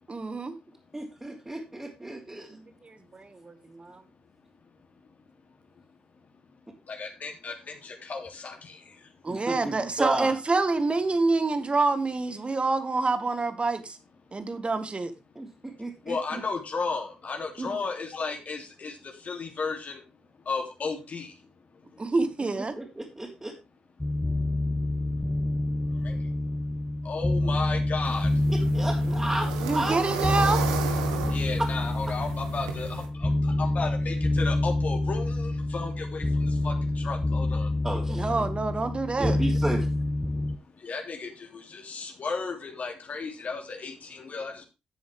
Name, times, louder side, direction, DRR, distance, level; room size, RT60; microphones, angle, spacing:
voice 1, 0.1-0.5 2.5-4.0 9.2-14.0 14.3-15.1 16.3-16.4 17.6-17.8 22.0-22.7 27.4-27.5 29.1-29.2 29.6-30.6 38.1-39.4, right 3 dB, 35° right, 1.9 m, -27 dB
voice 2, 0.9-2.6 9.3-10.4 15.4-16.2 22.6-23.5 28.5-30.0 31.6-31.7 37.8-38.4 39.2-39.9, right 1 dB, 15° right, 3.6 m, -33 dB
voice 3, 6.8-9.2 14.3-14.4 15.7-20.0 20.4-22.1 25.2-25.3 25.9-26.3 27.0-28.4 31.3-37.9 40.3-44.6, left 4 dB, 50° left, 3.0 m, -35 dB
sound 1, 24.0-40.6, left 2 dB, 15° left, 0.9 m, -27 dB
sound 2, 28.0-33.1, right 7 dB, 85° right, 1.3 m, -35 dB
13.0 x 7.7 x 3.6 m
hypercardioid pair, 40°, 3 cm